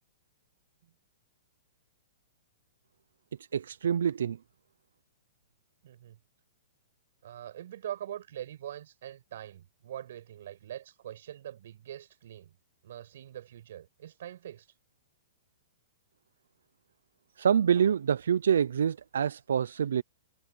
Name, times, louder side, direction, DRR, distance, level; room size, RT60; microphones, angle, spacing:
voice 1, 3.5-4.4 17.4-20.0, right 8 dB, 80° right, 0.4 m, -26 dB
voice 2, 5.8-6.2 7.2-12.5 12.8-14.7, right 11 dB, 50° right, 6.2 m, -43 dB
hypercardioid pair, 175°, 0 cm